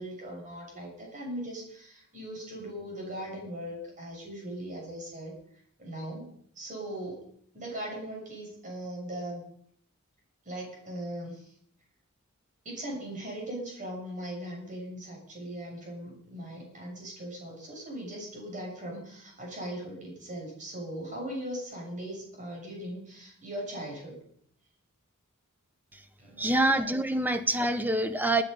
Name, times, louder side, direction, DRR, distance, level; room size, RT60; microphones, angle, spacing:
voice 1, 0.0-5.3 5.8-6.3 6.6-7.2 7.5-9.4 10.5-11.5 12.7-24.2 26.2-26.6, right 1 dB, 40° right, -1 dB, 7.0 m, -39 dB
voice 2, 26.4-28.4, right 1 dB, 10° right, 9 dB, 0.9 m, -26 dB
20.5 x 9.9 x 5.5 m, 0.66 s
head